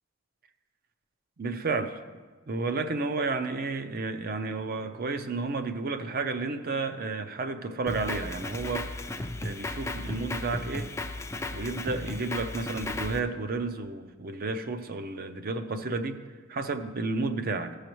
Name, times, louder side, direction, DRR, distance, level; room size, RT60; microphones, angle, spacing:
voice 1, 1.4-2.0 2.5-10.9 11.5-16.2 16.5-17.8, right 3 dB, 45° right, 9 dB, 0.5 m, -32 dB
Drum kit, 7.9-13.2, left 2 dB, 15° left, 0.4 m, -35 dB
15.0 x 6.5 x 3.0 m, 1.4 s
head